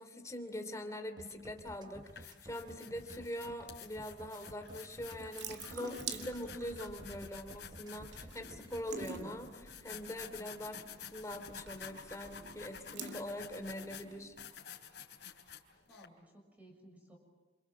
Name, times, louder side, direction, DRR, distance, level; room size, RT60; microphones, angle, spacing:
voice 1, 0.0-14.3, left 1 dB, 20° left, 6 dB, 2.9 m, -43 dB
sound 1, 1.2-9.2, right 1 dB, 25° right, 1.2 m, -53 dB
sound 2, 1.3-1.4 1.9-16.1, left 8 dB, 75° left, 3.7 m, -51 dB
Water tap faucet / Sink (filling or washing) / Drip, 4.6-14.5, right 5 dB, 80° right, 2.2 m, -49 dB
voice 2, 15.9-17.2, right 1 dB, 10° right, 3 dB, 6.8 m, -59 dB
28.0 x 27.5 x 7.5 m, 1.2 s
head